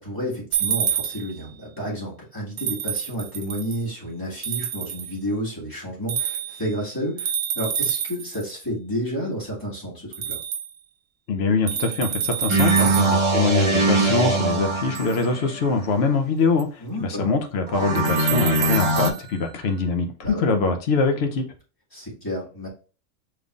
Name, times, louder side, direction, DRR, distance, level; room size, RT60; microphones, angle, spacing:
voice 1, 0.0-10.4 12.8-13.0 16.8-17.3 20.2-20.4 21.9-22.7, equal, 15° left, -5 dB, 1.9 m, -31 dB
sound 1, 0.5-1.4 2.6-3.8 4.4-5.2 6.1-6.7 7.2-8.5 10.1-10.7 11.7-13.3 14.9-15.2 16.6-16.7 18.0-19.2, right 9 dB, 85° right, 1.0 m, -28 dB
voice 2, 11.3-21.4, left 4 dB, 60° left, 6 dB, 0.9 m, -23 dB
sound 2, 12.5-15.7 17.7-19.1, right 2 dB, 25° right, 0.8 m, -22 dB
5.3 x 3.3 x 2.4 m, 0.36 s
omnidirectional pair, 1.3 m